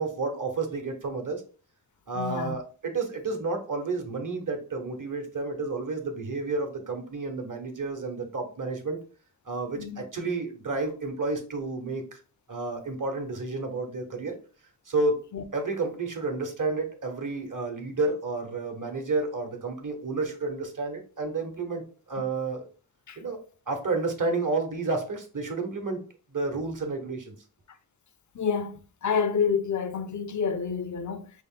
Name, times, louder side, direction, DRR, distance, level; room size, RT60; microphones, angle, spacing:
voice 1, 0.0-1.4 2.1-9.0 9.5-12.2 12.5-14.3 14.9-15.2 15.5-21.8 22.1-22.7 23.2-23.4 23.7-26.0 26.3-27.3, right 3 dB, 55° right, 1.1 m, -30 dB
voice 2, 2.1-2.6 9.8-10.0 15.3-15.4 23.1-23.2 28.3-31.3, left 6 dB, 50° left, 0.5 m, -28 dB
5.3 x 2.0 x 3.6 m
wide cardioid pair, 40°, 38 cm